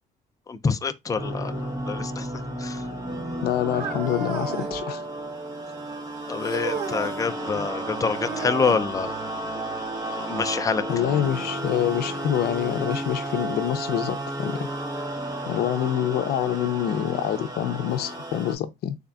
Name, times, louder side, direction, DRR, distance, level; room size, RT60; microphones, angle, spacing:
voice 1, 0.5-2.3 2.6-2.8 6.3-9.1 10.1-10.8, left 5 dB, 20° left, 0.4 m, -26 dB
sound 1, 1.2-18.5, right 1 dB, 20° right, 0.9 m, -32 dB
voice 2, 3.4-5.0 7.5-7.7 10.9-14.7 15.5-19.0, left 11 dB, 70° left, 0.6 m, -26 dB
sound 2, 3.7-4.8 6.4-7.1 8.2-8.9 10.9-11.0 11.9-12.0 12.9-13.0, right 5 dB, 80° right, 2.3 m, -34 dB
3.7 x 3.5 x 2.3 m
cardioid pair, 110°, 17 cm